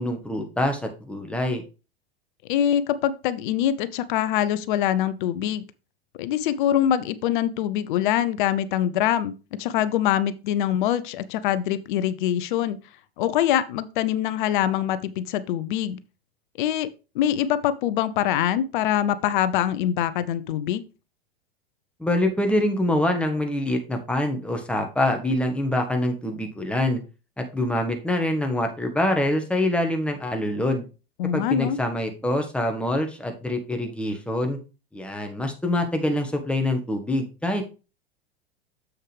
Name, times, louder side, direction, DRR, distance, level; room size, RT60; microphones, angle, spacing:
voice 1, 0.0-1.6 22.0-27.0 27.4-30.8 31.3-34.6 34.9-37.6, left 1 dB, 5° left, 1.5 m, -25 dB
voice 2, 2.5-5.6 6.2-12.8 13.2-16.0 16.6-20.8 31.2-31.8, left 11 dB, 55° left, 0.8 m, -24 dB
7.3 x 6.4 x 3.3 m
figure-of-eight pair, 90°, 30 cm